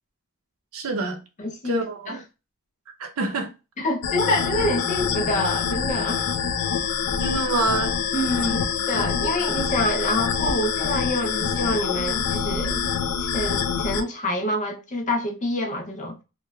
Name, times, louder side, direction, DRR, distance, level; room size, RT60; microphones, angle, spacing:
voice 1, 0.7-1.2 1.6-2.2 3.0-3.5 7.2-7.9, right 2 dB, 85° right, 0.6 m, -26 dB
voice 2, 1.4-2.2 3.8-6.3 8.1-12.8 13.2-16.2, left 1 dB, 35° left, 0.6 m, -26 dB
sound 1, 4.0-14.0, left 6 dB, 80° left, 0.3 m, -26 dB
3.0 x 2.2 x 2.2 m
head